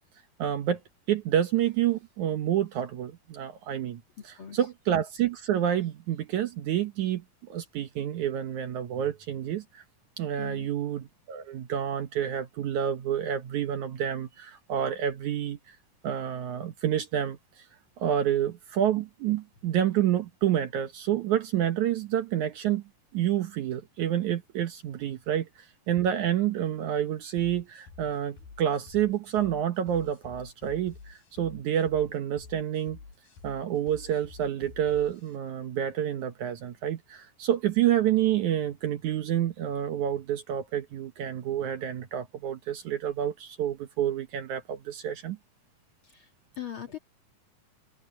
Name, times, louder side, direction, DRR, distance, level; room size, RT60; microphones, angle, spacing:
voice 1, 0.4-0.8 1.1-4.0 4.5-7.2 7.5-9.8 10.2-15.6 16.0-17.6 18.0-22.8 23.1-25.5 25.9-33.0 33.4-45.4, right 10 dB, 65° right, 2.2 m, -28 dB
voice 2, 4.2-4.6 10.4-10.7 46.0-46.3 46.6-47.0, left 9 dB, 45° left, 2.2 m, -40 dB
sound 1, 27.4-35.4, left 4 dB, 85° left, 7.9 m, -49 dB
open air
omnidirectional pair, 4.2 m